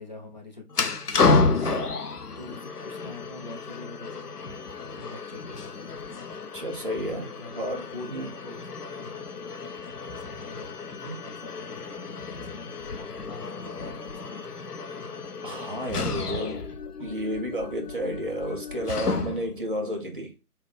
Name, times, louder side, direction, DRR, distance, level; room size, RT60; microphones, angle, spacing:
voice 1, 0.0-1.3 2.3-4.6 5.0-5.8 7.3-9.6 10.1-10.9 11.2-11.8 12.3-14.2 16.0-16.5, left 3 dB, 30° left, 0.7 m, -45 dB
sound 1, 0.7-19.6, left 4 dB, 80° left, 0.8 m, -31 dB
voice 2, 1.6-2.0 6.5-8.3 11.0-11.2 15.4-16.6 17.0-20.3, equal, 35° right, 0.7 m, -32 dB
5.6 x 2.4 x 3.3 m
figure-of-eight pair, 155°, 46 cm